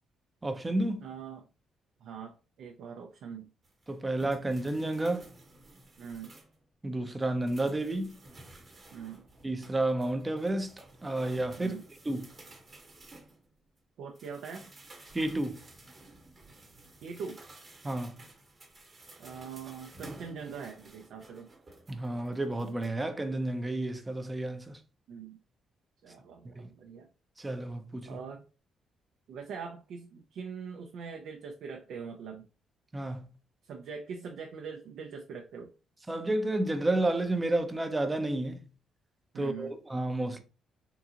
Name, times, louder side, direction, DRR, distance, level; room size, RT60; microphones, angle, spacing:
voice 1, 0.4-1.1 3.9-5.3 6.8-8.2 9.4-11.8 12.0-12.3 15.1-15.6 17.8-18.2 21.9-24.8 26.6-26.7 27.4-28.2 32.9-33.3 36.1-38.6 39.4-40.4, right 2 dB, 20° right, 0.5 m, -31 dB
voice 2, 1.0-1.4 2.0-3.5 6.0-6.3 8.9-9.3 11.6-11.8 14.0-14.7 17.0-17.4 19.2-21.5 25.1-25.4 26.0-27.1 28.1-28.4 29.3-32.5 33.6-35.7 39.3-39.7, right 6 dB, 75° right, 0.4 m, -42 dB
sound 1, 3.6-6.6 7.0-13.8 14.2-22.9, right 2 dB, 35° right, 1.0 m, -53 dB
3.7 x 2.4 x 2.8 m
cardioid pair, 90°, 0 cm